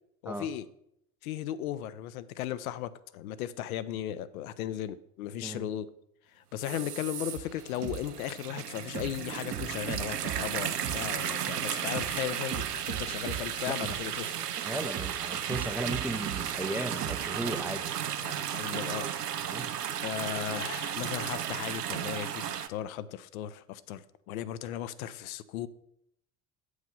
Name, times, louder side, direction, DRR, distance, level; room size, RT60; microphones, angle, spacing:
voice 1, 0.2-0.7 1.2-5.9 6.3-14.5 18.2-19.1 20.0-25.7, left 11 dB, 65° left, 14 dB, 0.6 m, -36 dB
sound 1, 6.6-22.7, right 9 dB, 90° right, 0.6 m, -34 dB
sound 2, 7.4-7.5 7.8-8.0 8.6-8.7 8.9-10.5 10.8-11.0 11.6-11.7 11.9-13.5 13.8-14.0 14.6-14.7 14.9-16.5 16.9-17.3 17.6-17.7 17.9-18.0 18.3-18.4, right 10 dB, 35° right, 0.8 m, -38 dB
voice 2, 14.7-17.9 19.5-19.7, right 1 dB, 5° right, 8 dB, 0.5 m, -36 dB
8.0 x 4.8 x 5.4 m, 0.75 s
figure-of-eight pair, 65°, 46 cm